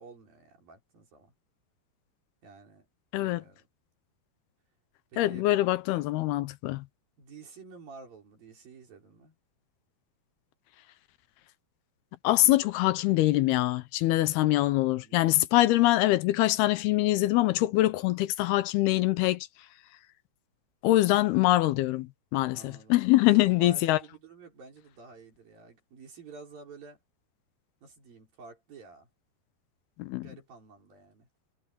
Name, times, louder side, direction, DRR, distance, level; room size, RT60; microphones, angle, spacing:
voice 1, 0.0-1.3 2.4-2.9 3.2-3.7 5.1-5.5 7.2-9.4 15.0-15.3 22.5-23.0 23.2-27.0 27.8-29.1 30.2-31.3, right 4 dB, 60° right, 7.1 m, -50 dB
voice 2, 5.2-6.8 12.2-19.5 20.8-24.0 30.0-30.3, left 16 dB, 80° left, 2.7 m, -24 dB
omnidirectional pair, 4.7 m